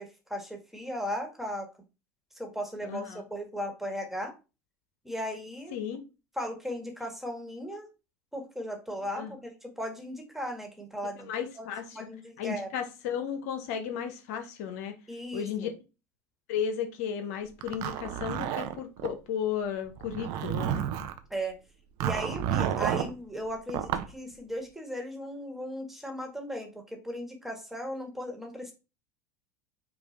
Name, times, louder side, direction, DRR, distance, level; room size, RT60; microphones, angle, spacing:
voice 1, 0.3-1.7 2.4-4.3 5.0-5.7 6.4-7.9 8.3-11.3 11.5-12.7 15.1-15.7 21.3-21.5 22.0-28.7, equal, 5° right, 2 dB, 1.5 m, -37 dB
voice 2, 2.8-3.2 5.7-6.0 9.2-9.3 11.3-12.0 12.4-14.9 15.3-15.7 16.5-20.8, left 8 dB, 75° left, 7 dB, 0.7 m, -34 dB
Zipper (clothing), 17.6-19.1 20.0-21.2 22.0-23.1 23.7-24.1, right 10 dB, 65° right, 0.6 m, -30 dB
5.2 x 2.4 x 3.2 m, 0.29 s
hypercardioid pair, 90°, 8 cm